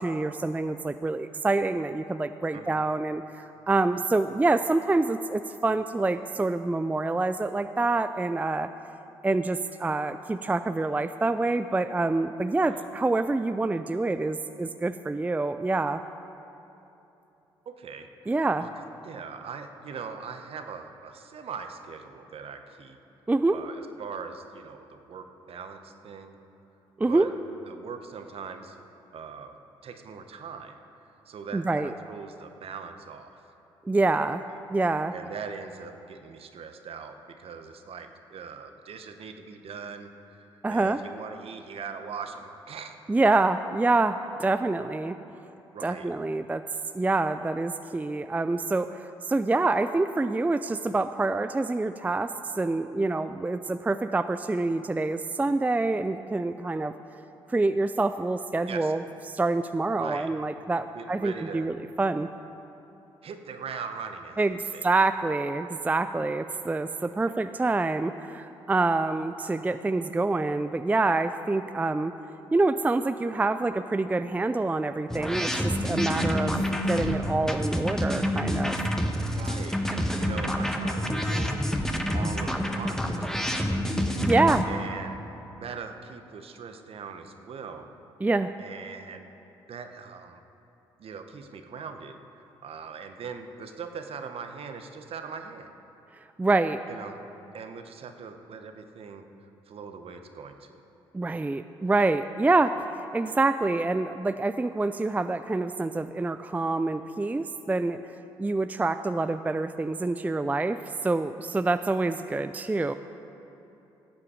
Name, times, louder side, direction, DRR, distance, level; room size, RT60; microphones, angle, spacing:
voice 1, 0.0-8.7 9.2-16.0 18.3-18.7 23.3-23.6 27.0-27.3 31.5-31.9 33.9-34.4 34.7-35.1 40.6-41.0 43.1-45.2 45.8-46.6 46.9-56.9 57.5-59.0 59.3-62.3 64.4-72.1 72.5-78.8 84.2-84.7 88.2-88.5 96.4-96.8 101.1-112.9, right 3 dB, 15° right, 10 dB, 0.4 m, -26 dB
voice 2, 17.7-18.7 19.0-23.0 23.5-26.3 27.1-27.3 27.7-28.8 29.1-29.5 29.8-30.7 31.3-33.4 35.1-43.0 44.6-44.7 45.7-46.1 58.7-58.9 60.0-60.3 60.9-61.7 63.2-64.8 79.3-81.7 82.1-84.0 84.6-85.2 85.6-87.9 88.6-89.3 89.7-90.4 91.0-95.7 96.9-97.2 97.5-99.3 99.7-100.7, right 6 dB, 50° right, 7 dB, 1.0 m, -41 dB
sound 1, 75.1-84.7, equal, 5° left, 1.1 m, -28 dB
14.5 x 8.4 x 4.9 m, 3.0 s
hypercardioid pair, 45°, 12 cm